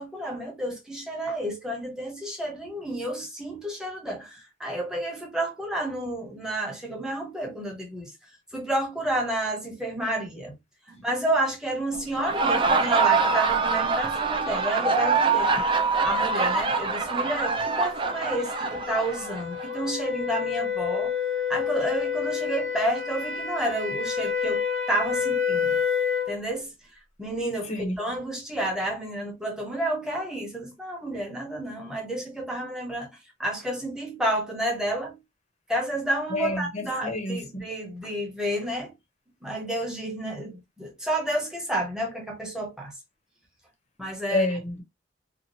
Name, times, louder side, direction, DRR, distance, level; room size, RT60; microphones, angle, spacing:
voice 1, 0.0-8.1 8.5-10.5 11.0-15.5 16.0-21.1 21.5-25.8 26.3-26.7 27.2-27.7 28.0-33.1 33.4-35.2 35.7-38.9 39.4-42.9 44.0-44.5, right 1 dB, 5° right, 0.8 m, -30 dB
Laughter, 12.1-19.7, right 4 dB, 25° right, 0.4 m, -24 dB
sound 1, 16.5-26.4, left 7 dB, 65° right, 1.0 m, -29 dB
voice 2, 36.3-37.6 44.3-44.8, left 2 dB, 35° left, 0.7 m, -29 dB
2.8 x 2.4 x 2.7 m
head